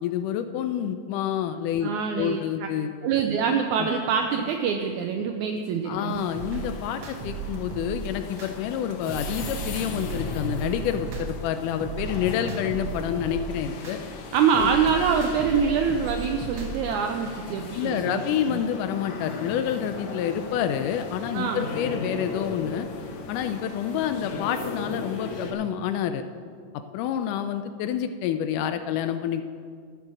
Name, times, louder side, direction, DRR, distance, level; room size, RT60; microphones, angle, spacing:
voice 1, 0.0-2.9 3.8-3.9 5.9-14.0 14.6-14.7 17.7-22.9 23.3-26.2 26.9-29.5, left 9 dB, 80° left, 10 dB, 1.9 m, -28 dB
voice 2, 1.8-2.7 3.0-6.2 14.3-18.2 18.5-18.6 21.3-21.7, right 6 dB, 85° right, 4 dB, 1.7 m, -25 dB
sound 1, 6.1-25.5, left 3 dB, 65° left, 2.0 m, -37 dB
sound 2, 6.3-8.5 8.9-11.5 11.8-14.0 14.4-16.9, right 6 dB, 65° right, 1.3 m, -36 dB
12.5 x 7.7 x 6.2 m, 2.1 s
omnidirectional pair, 4.0 m